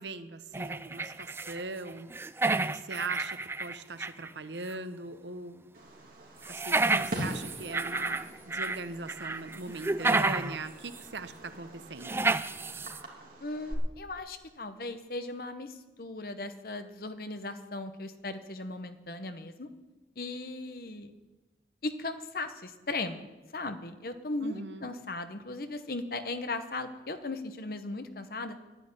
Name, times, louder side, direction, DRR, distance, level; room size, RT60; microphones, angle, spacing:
voice 1, 0.0-2.1 2.5-5.6 6.5-12.2 24.4-24.9, right 3 dB, 85° right, 11 dB, 0.9 m, -40 dB
sound 1, 0.5-1.6 1.9-4.3 4.7-4.8 6.4-8.8 9.1-10.6 10.9-11.0 12.0-13.0, right 3 dB, 15° right, 0.4 m, -30 dB
Fireworks, 5.7-13.7, equal, 55° right, 3.4 m, -43 dB
voice 2, 13.4-19.7 20.2-21.1 21.8-28.6, left 2 dB, 55° left, 9 dB, 1.1 m, -37 dB
11.0 x 10.0 x 9.6 m, 1.2 s
head